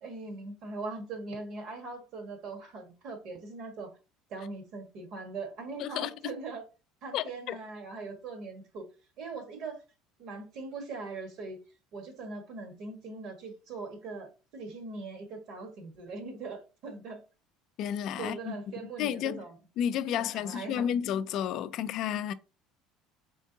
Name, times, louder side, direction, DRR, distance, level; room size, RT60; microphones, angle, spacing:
voice 1, 0.0-3.9 4.3-6.6 7.0-8.9 9.2-9.8 10.2-11.6 11.9-17.2 18.2-19.6 20.2-20.9, right 3 dB, 55° right, 1.3 m, -41 dB
voice 2, 5.8-6.3 7.1-7.6 17.8-18.5 19.0-19.4 19.8-22.3, left 9 dB, 55° left, 0.3 m, -31 dB
4.4 x 3.5 x 2.7 m
cardioid pair, 135°, 0 cm